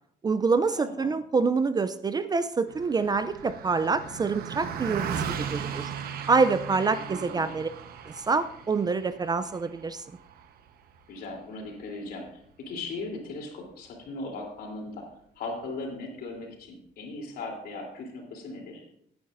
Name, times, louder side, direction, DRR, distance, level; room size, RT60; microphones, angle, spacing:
voice 1, 0.2-5.9 6.3-7.7 8.0-10.0, right 4 dB, 25° right, 12 dB, 0.4 m, -26 dB
voice 2, 0.8-1.1 6.9-7.5 11.1-12.3 12.6-15.0 15.3-18.8, left 2 dB, 65° left, 1 dB, 3.3 m, -38 dB
Car passing by, 2.7-12.3, right 7 dB, 65° right, 1.0 m, -37 dB
17.0 x 9.5 x 2.6 m, 0.73 s
cardioid pair, 110°, 17 cm